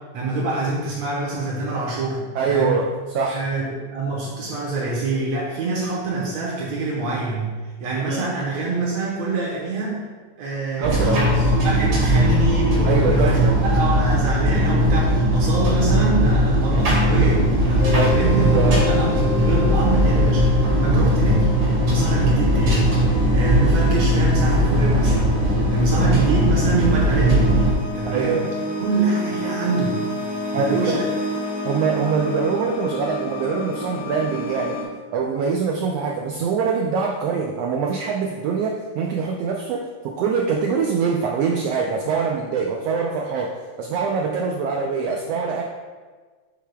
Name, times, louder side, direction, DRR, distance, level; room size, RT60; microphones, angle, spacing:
voice 1, 0.1-2.2 2.5-2.8 3.3-7.5 7.8-10.0 10.4-25.4 25.7-27.6 27.9-28.4 28.8-30.1 30.6-31.0, right 3 dB, 65° right, -5 dB, 2.2 m, -26 dB
voice 2, 2.3-3.4 8.1-8.2 10.8-11.2 12.8-13.5 17.9-18.8 28.0-28.5 30.5-30.9 31.6-34.8 35.1-43.5 43.8-45.6, right 5 dB, 90° right, 1 dB, 1.4 m, -24 dB
sound 1, 10.8-27.7, equal, 45° right, 2.6 m, -18 dB
sound 2, 17.8-34.8, equal, 80° left, 2.9 m, -29 dB
8.5 x 7.2 x 2.3 m, 1.4 s
omnidirectional pair, 3.4 m